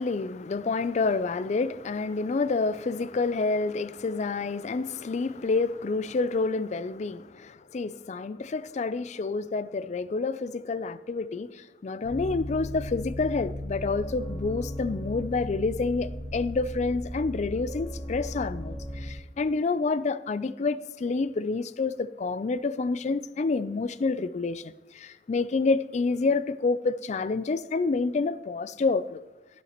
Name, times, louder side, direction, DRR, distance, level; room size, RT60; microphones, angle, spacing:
voice 1, 0.0-29.2, left 3 dB, 40° left, 0.4 m, -28 dB
sound 1, 12.0-19.1, left 1 dB, 20° left, 2.1 m, -36 dB
13.0 x 11.0 x 2.9 m
head